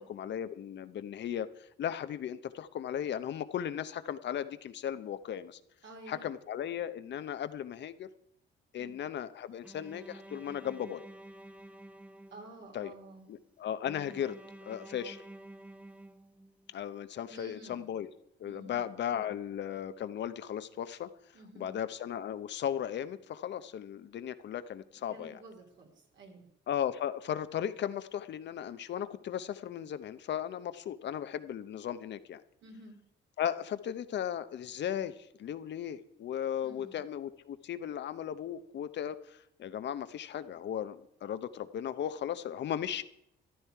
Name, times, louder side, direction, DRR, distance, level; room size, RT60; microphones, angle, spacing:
voice 1, 0.0-5.6 6.1-8.1 8.7-11.0 12.7-12.9 13.3-14.4 14.6-15.2 16.7-18.1 18.4-21.1 21.6-25.4 26.7-32.4 33.4-43.0, left 9 dB, 65° left, 12 dB, 0.8 m, -36 dB
voice 2, 5.8-6.2 8.7-9.0 12.3-13.3 17.2-17.9 18.4-19.4 21.3-21.7 25.1-26.5 32.6-33.0 36.6-37.0, right 2 dB, 65° right, 1 dB, 3.4 m, -51 dB
Bowed string instrument, 9.6-12.8 13.8-16.8, right 1 dB, 5° right, 0.8 m, -50 dB
13.5 x 11.5 x 4.6 m, 0.75 s
cardioid pair, 90°, 20 cm